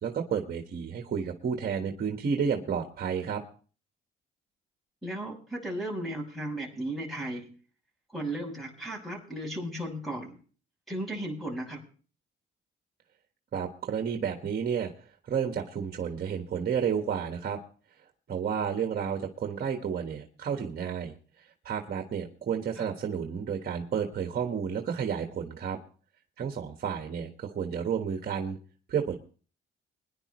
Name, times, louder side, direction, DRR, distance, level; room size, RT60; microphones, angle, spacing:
voice 1, 0.0-3.4 13.5-14.9 15.2-17.6 18.3-21.1 21.6-25.8 26.4-28.6 28.9-29.2, right 7 dB, 50° right, 3 dB, 1.5 m, -31 dB
voice 2, 5.0-7.5 8.1-10.4 10.9-11.8 22.8-22.9, right 1 dB, ahead, 1 dB, 6.3 m, -35 dB
22.5 x 10.5 x 3.1 m, 0.40 s
cardioid pair, 90°, 20 cm